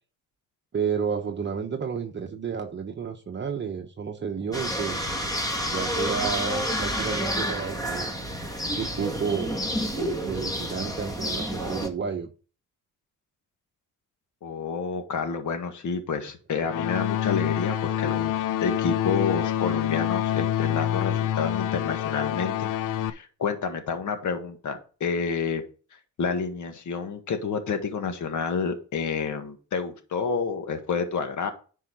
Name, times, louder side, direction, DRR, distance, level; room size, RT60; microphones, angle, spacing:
voice 1, 0.7-5.1 5.6-8.1 8.6-12.3 17.4-17.8, right 6 dB, 35° right, 4 dB, 1.0 m, -31 dB
sound 1, 4.5-11.9, equal, 10° left, 2.0 m, -29 dB
voice 2, 14.4-22.7 23.1-25.6 26.2-31.5, left 5 dB, 65° left, 7 dB, 1.8 m, -29 dB
sound 2, 16.7-23.1, left 11 dB, 85° left, 0.7 m, -27 dB
10.0 x 4.7 x 4.8 m, 0.37 s
cardioid pair, 95°, 32 cm